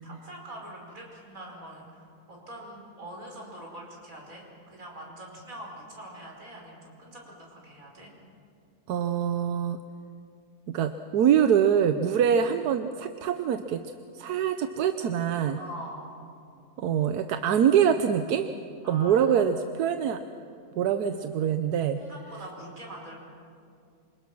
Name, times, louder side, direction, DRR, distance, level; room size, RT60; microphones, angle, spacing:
voice 1, 0.0-8.1 15.5-16.2 18.8-19.6 22.0-23.1, right 1 dB, 60° right, -1 dB, 5.5 m, -44 dB
voice 2, 8.9-9.8 10.7-13.8 14.1-15.6 16.8-18.5 18.9-20.2 20.8-22.0, right 8 dB, 90° right, 8 dB, 1.3 m, -24 dB
27.5 x 25.5 x 6.1 m, 2.4 s
omnidirectional pair, 1.6 m